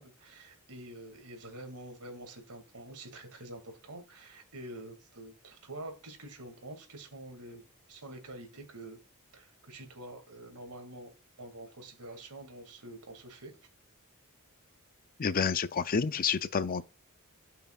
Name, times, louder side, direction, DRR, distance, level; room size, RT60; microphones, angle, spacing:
voice 1, 0.0-9.0 9.3-13.5, right 1 dB, 80° right, 2.3 m, -47 dB
voice 2, 15.2-16.8, left 6 dB, 40° left, 0.5 m, -29 dB
13.0 x 5.7 x 2.4 m
head